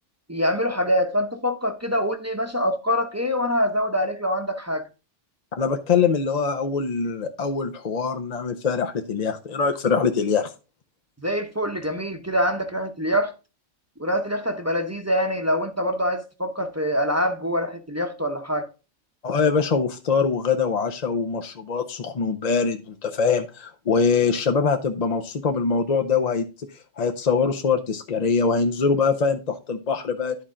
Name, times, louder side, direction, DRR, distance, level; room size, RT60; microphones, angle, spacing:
voice 1, 0.3-4.9 11.2-13.3 14.0-18.7, equal, 15° right, 0.7 m, -25 dB
voice 2, 5.5-10.5 19.2-26.5 27.0-30.4, left 5 dB, 45° left, 0.6 m, -23 dB
11.0 x 4.3 x 3.7 m
omnidirectional pair, 1.2 m